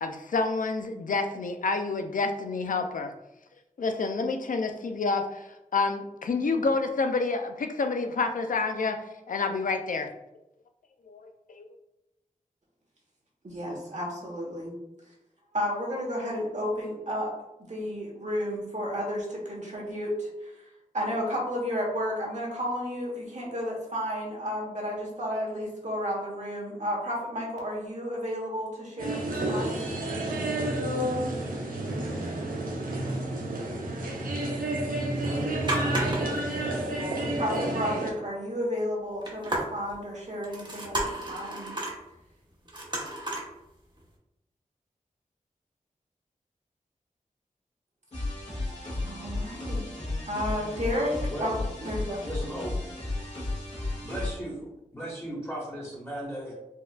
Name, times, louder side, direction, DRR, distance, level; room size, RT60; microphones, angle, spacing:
voice 1, 0.0-3.1 3.8-5.2 5.7-9.0 9.3-10.1 11.1-11.2 11.6-11.7, left 3 dB, 70° left, 6 dB, 0.4 m, -28 dB
voice 2, 13.4-14.8 15.5-17.3 17.6-20.7 20.9-29.9 35.2-35.4 35.7-41.8 49.0-49.9 50.3-52.2, equal, 55° right, -3 dB, 1.1 m, -32 dB
sound 1, 29.0-38.1, right 1 dB, 90° right, 0.6 m, -30 dB
sound 2, 35.6-36.5 36.8-36.9 37.3-37.4 39.2-40.0 40.4-42.0 42.7-43.5 44.0-44.1, right 1 dB, 35° right, 0.8 m, -32 dB
sound 3, 48.1-54.3, left 2 dB, 50° left, 1.4 m, -33 dB
voice 3, 52.2-52.8 54.0-56.5, equal, 15° left, -5 dB, 1.3 m, -36 dB
4.4 x 2.4 x 2.3 m, 0.90 s
wide cardioid pair, 55°, 14 cm